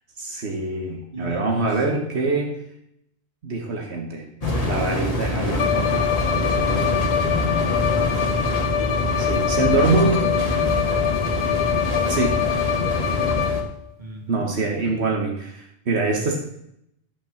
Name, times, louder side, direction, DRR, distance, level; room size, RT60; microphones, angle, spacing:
voice 1, 0.2-2.5 3.4-4.3 4.6-6.1 9.2-10.3 12.1-12.4 14.3-16.4, right 3 dB, 85° right, 1 dB, 1.7 m, -24 dB
voice 2, 1.1-2.0 5.3-5.9 6.5-8.3 9.3-10.9 11.6-11.9 14.0-14.4 14.7-15.1, right 2 dB, 45° right, -1 dB, 2.8 m, -38 dB
sound 1, 4.4-13.6, left 1 dB, 35° left, 1.6 m, -25 dB
Bowed string instrument, 5.6-13.8, left 9 dB, 85° left, 0.9 m, -24 dB
11.5 x 5.5 x 7.2 m, 0.78 s
omnidirectional pair, 1.1 m